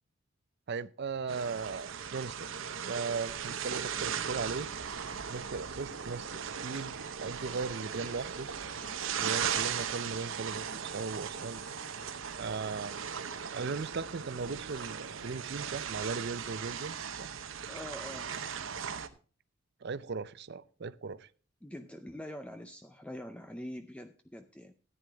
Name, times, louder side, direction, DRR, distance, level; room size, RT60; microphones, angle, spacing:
voice 1, 0.7-2.5 2.9-4.7 5.3-8.5 9.2-11.6 12.4-13.0 13.5-17.3 19.8-21.3, right 4 dB, 55° right, 0.5 m, -38 dB
sound 1, 1.3-19.1, right 7 dB, 70° right, 0.9 m, -38 dB
sound 2, 8.8-9.1 9.4-9.7 10.1-10.4 10.7-10.9 11.3-11.5 12.0-12.1 12.6-12.8 13.2-13.4, equal, 40° left, 7.4 m, -56 dB
voice 2, 17.7-18.5 21.6-24.7, left 1 dB, 5° left, 0.5 m, -44 dB
14.0 x 9.5 x 3.4 m
head